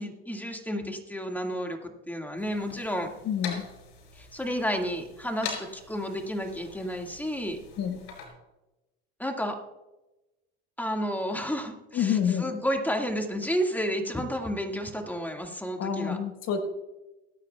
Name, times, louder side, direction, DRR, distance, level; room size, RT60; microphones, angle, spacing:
voice 1, 0.0-1.8 2.1-3.1 4.2-7.6 9.2-9.6 10.8-16.2, equal, 5° left, 3 dB, 1.9 m, -31 dB
sound 1, 2.4-8.3, left 6 dB, 80° left, 5.0 m, -43 dB
voice 2, 3.3-3.6 7.8-8.0 11.9-12.5 15.8-16.6, left 8 dB, 55° left, 5 dB, 1.5 m, -27 dB
26.0 x 9.0 x 2.3 m, 1.0 s
supercardioid pair, 85°, 31 cm